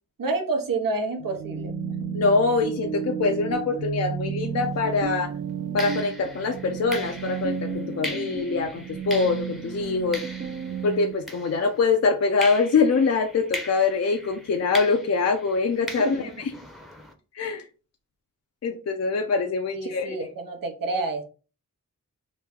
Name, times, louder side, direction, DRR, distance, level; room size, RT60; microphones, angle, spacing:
voice 1, 0.2-1.7 16.0-16.3 19.7-21.2, right 3 dB, 80° right, 5 dB, 0.8 m, -29 dB
sound 1, 1.2-11.1, right 6 dB, 45° right, 0.5 m, -32 dB
voice 2, 2.1-5.3 5.7-10.2 10.8-16.5 17.3-17.7 18.6-20.3, left 4 dB, 50° left, 4 dB, 0.5 m, -24 dB
sound 2, 4.6-4.8 5.8-11.9 12.4-17.1, equal, ahead, 0.7 m, -39 dB
3.0 x 2.1 x 3.5 m, 0.35 s
wide cardioid pair, 80°, 33 cm